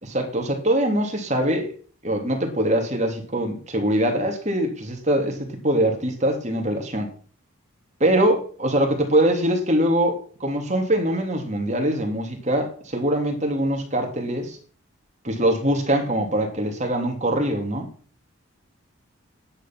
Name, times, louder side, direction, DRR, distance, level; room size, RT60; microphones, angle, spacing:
voice 1, 0.0-1.7 2.0-7.1 8.0-14.6 15.2-17.9, right 1 dB, 35° right, 2.6 m, -23 dB
10.0 x 9.1 x 6.0 m
head